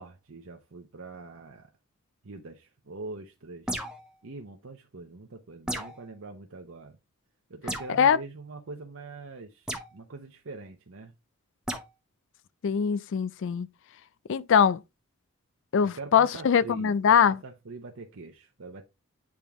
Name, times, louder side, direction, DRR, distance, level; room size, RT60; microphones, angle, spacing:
voice 1, 0.0-1.7 2.2-3.7 4.2-7.0 7.5-11.1 15.8-18.8, right 3 dB, 60° right, 0.8 m, -43 dB
sound 1, 3.7-4.1 5.7-6.0 7.7-8.0 9.7-9.9 11.7-11.9, right 1 dB, 5° right, 0.8 m, -34 dB
voice 2, 12.6-13.7 14.3-14.8 15.7-17.4, left 7 dB, 60° left, 0.4 m, -22 dB
8.6 x 3.6 x 3.5 m
head